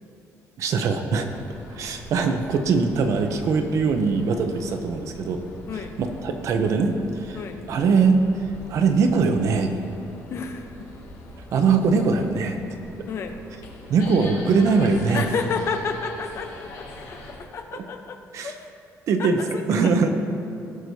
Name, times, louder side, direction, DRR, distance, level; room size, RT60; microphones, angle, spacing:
voice 1, 0.6-1.3 1.7-5.4 5.7-9.7 11.5-12.6 13.9-15.3 17.7-17.8 18.3-18.5 19.1-19.4 19.7-20.1, right 4 dB, 55° right, 6 dB, 0.7 m, -22 dB
sound 1, 1.1-17.4, left 1 dB, 65° left, 2.0 m, -43 dB
voice 2, 10.3-10.9 13.1-13.4 15.1-18.2 18.4-18.7 19.2-19.9, left 5 dB, 45° left, 6 dB, 0.7 m, -31 dB
17.5 x 6.0 x 2.7 m, 2.6 s
cardioid pair, 165°, 6 cm